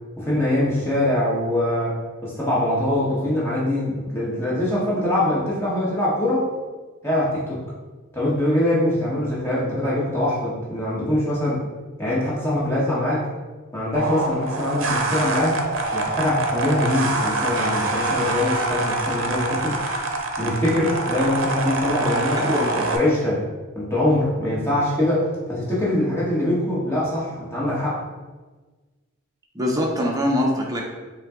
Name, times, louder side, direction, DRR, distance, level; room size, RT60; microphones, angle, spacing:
voice 1, 0.2-2.0 2.2-6.5 7.0-7.6 8.1-11.6 12.0-13.2 13.7-15.6 15.9-19.8 20.4-23.4 23.7-28.0, left 1 dB, 10° left, -7 dB, 1.2 m, -23 dB
sound 1, 13.9-23.0, right 2 dB, 70° right, 0.6 m, -25 dB
voice 2, 29.5-30.8, left 1 dB, 15° right, -1 dB, 0.6 m, -22 dB
5.4 x 2.2 x 3.6 m, 1.3 s
head